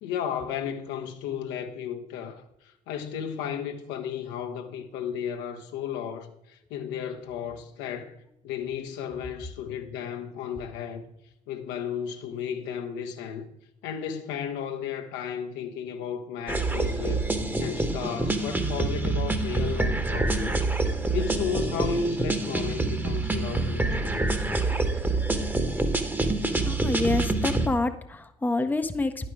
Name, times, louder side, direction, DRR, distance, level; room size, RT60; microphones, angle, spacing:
voice 1, 0.0-2.4 2.9-11.1 11.5-13.5 13.8-17.2 17.6-20.7 21.1-24.4, left 7 dB, 65° left, 0.9 m, -34 dB
sound 1, 16.5-27.7, right 2 dB, 10° right, 1.1 m, -26 dB
voice 2, 26.6-29.3, left 2 dB, 10° left, 0.7 m, -27 dB
10.5 x 5.2 x 4.7 m
figure-of-eight pair, 50°, 20 cm